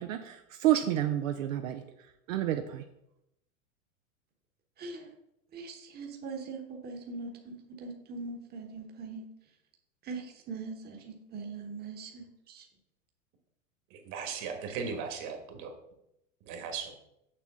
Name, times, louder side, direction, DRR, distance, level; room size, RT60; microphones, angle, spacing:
voice 1, 0.0-1.8 2.3-2.8, right 12 dB, 75° right, 5 dB, 0.7 m, -29 dB
voice 2, 4.8-5.1 5.5-9.3 10.0-12.6, right 4 dB, 25° right, 3 dB, 1.1 m, -41 dB
voice 3, 13.9-15.7 16.4-16.9, right 5 dB, 45° right, 5 dB, 1.6 m, -37 dB
6.8 x 5.9 x 3.7 m, 0.83 s
hypercardioid pair, 110°, 40 cm